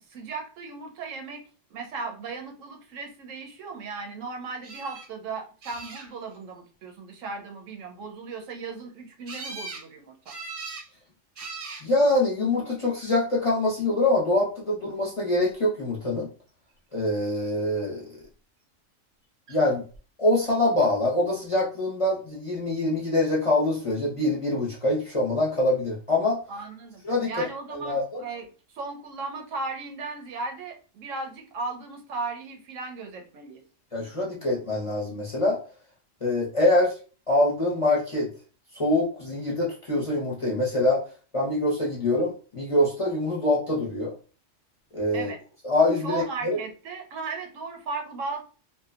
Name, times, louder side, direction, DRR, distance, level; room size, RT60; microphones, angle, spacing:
voice 1, 0.0-1.4 1.7-10.3 26.5-28.5 28.7-33.6 45.1-45.4 46.0-48.4, right 4 dB, 90° right, 3 dB, 1.0 m, -36 dB
sound 1, 4.6-5.1 5.6-6.4 9.3-9.9 10.3-10.9 11.4-11.9 12.8-13.3 19.5-19.6 19.9-20.0, right 4 dB, 55° right, 0.7 m, -39 dB
voice 2, 11.8-16.3 16.9-18.2 19.5-19.8 20.2-26.4 27.0-28.2 33.9-35.6 36.2-37.0 37.3-38.3 38.7-41.0 41.3-44.1 44.9-45.3 45.6-46.6, left 2 dB, 35° left, -5 dB, 0.5 m, -24 dB
2.7 x 2.1 x 2.4 m, 0.37 s
omnidirectional pair, 1.3 m